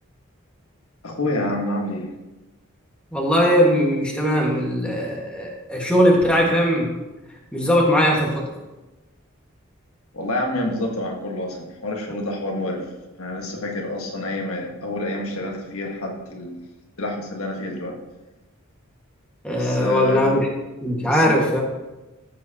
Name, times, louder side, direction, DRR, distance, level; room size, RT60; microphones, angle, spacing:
voice 1, 1.0-2.1 10.1-12.8 13.2-16.6 17.0-17.9 19.5-20.4 21.1-21.3, left 1 dB, 85° left, 1 dB, 1.5 m, -28 dB
voice 2, 3.1-6.9 7.5-8.5 19.4-20.5 20.8-21.6, equal, 5° left, -3 dB, 1.6 m, -19 dB
14.0 x 7.6 x 2.9 m, 1.1 s
head